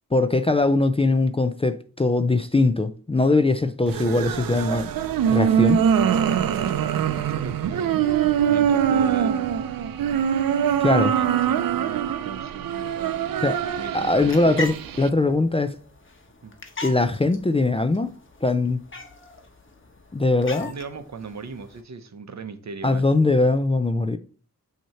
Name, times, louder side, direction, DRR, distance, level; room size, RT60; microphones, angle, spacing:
voice 1, 0.1-4.9 5.3-5.8 10.8-11.2 13.4-13.6 13.9-15.8 16.8-18.1 18.4-18.8 20.1-20.7 22.8-24.2, left 2 dB, 15° left, 0.4 m, -21 dB
Creepy Distant Crying, 3.9-15.1, right 8 dB, 80° right, 0.5 m, -23 dB
voice 2, 7.0-9.5 10.8-13.3 13.5-14.7 16.4-16.6 20.6-23.1, right 5 dB, 55° right, 0.8 m, -38 dB
sound 1, 14.0-21.8, left 2 dB, 35° left, 1.1 m, -40 dB
6.1 x 2.9 x 5.6 m
cardioid pair, 70°, 34 cm